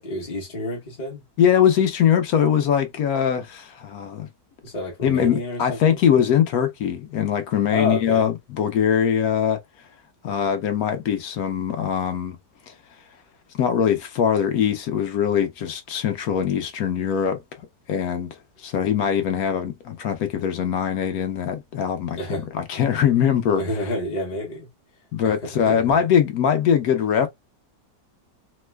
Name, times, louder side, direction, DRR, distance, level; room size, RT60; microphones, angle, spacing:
voice 1, 0.0-1.2 4.6-6.0 7.7-8.3 22.2-22.5 23.5-24.7 25.2-25.8, left 1 dB, 35° left, 0.8 m, -29 dB
voice 2, 1.4-4.3 5.0-9.6 10.2-12.4 12.7-12.8 13.6-17.4 17.9-18.3 18.6-23.9 25.1-27.3, left 8 dB, 70° left, 1.0 m, -22 dB
3.0 x 2.1 x 3.3 m
omnidirectional pair, 1.9 m